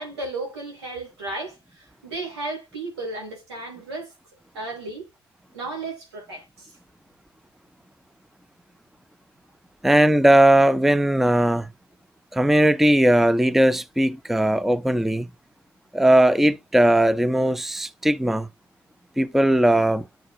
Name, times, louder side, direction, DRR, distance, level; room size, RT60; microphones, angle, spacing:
voice 1, 0.0-4.1 4.5-5.1 5.5-6.7, right 2 dB, 85° right, 2.5 m, -34 dB
voice 2, 9.8-11.7 12.3-15.3 15.9-18.5 19.2-20.1, right 1 dB, ahead, 0.5 m, -18 dB
10.5 x 4.3 x 2.6 m
hypercardioid pair, 50°, 13 cm